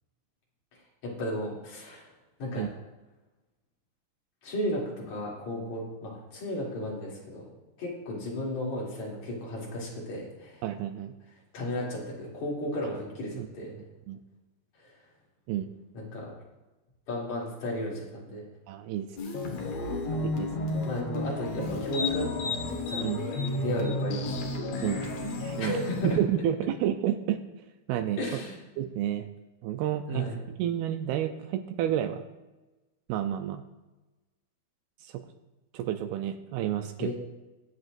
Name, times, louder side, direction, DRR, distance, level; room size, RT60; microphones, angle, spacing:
voice 1, 1.0-2.1 2.4-2.7 4.4-7.5 7.8-10.6 11.5-13.7 14.8-14.9 15.9-16.3 17.1-18.4 20.8-23.1 23.6-24.4 25.6-26.0 28.2-28.6 30.1-30.3 37.0-37.1, left 1 dB, 45° left, -5 dB, 3.8 m, -34 dB
voice 2, 10.6-11.1 13.4-13.5 13.8-14.2 15.5-15.7 18.7-19.1 20.2-20.5 23.0-23.2 24.8-25.1 25.4-25.8 26.0-27.4 27.9-28.2 28.8-29.3 29.6-32.2 33.1-33.6 35.0-35.2 35.7-37.1, right 11 dB, 80° right, 8 dB, 2.3 m, -30 dB
sound 1, 19.2-26.2, left 2 dB, 65° left, 1.7 m, -32 dB
21.5 x 7.9 x 2.5 m, 1.1 s
omnidirectional pair, 4.8 m